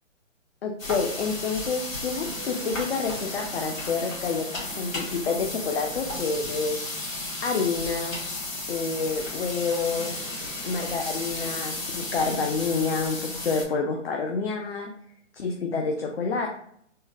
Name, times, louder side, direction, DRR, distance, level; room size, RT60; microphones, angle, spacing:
voice 1, 0.6-6.8 7.4-8.2 8.7-10.2 10.6-14.9 15.3-16.5, left 4 dB, 50° left, 2 dB, 0.5 m, -28 dB
sound 1, 0.8-13.7, left 2 dB, 90° left, 1.5 m, -34 dB
sound 2, 2.2-6.9 7.6-7.7 9.8-12.4, right 3 dB, 20° right, 0.5 m, -47 dB
3.6 x 2.1 x 2.6 m, 0.67 s
hypercardioid pair, 150°, 38 cm